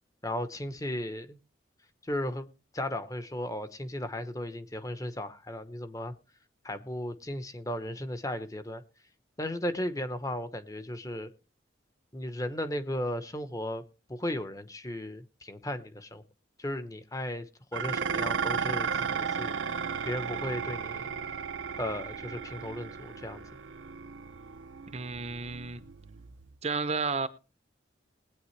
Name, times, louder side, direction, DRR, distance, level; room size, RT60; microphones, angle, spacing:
voice 1, 0.2-1.4 2.0-2.5 2.7-6.1 6.6-8.8 9.4-11.3 12.1-13.8 14.1-16.2 16.6-19.6 20.0-21.1 21.8-23.4, left 1 dB, 20° left, 11 dB, 0.9 m, -35 dB
Dishes pots and pans, 17.7-26.5, right 6 dB, 80° right, 0.7 m, -35 dB
voice 2, 24.9-25.8 26.6-27.3, right 4 dB, 35° right, 13 dB, 0.6 m, -32 dB
20.0 x 9.1 x 3.2 m, 0.33 s
head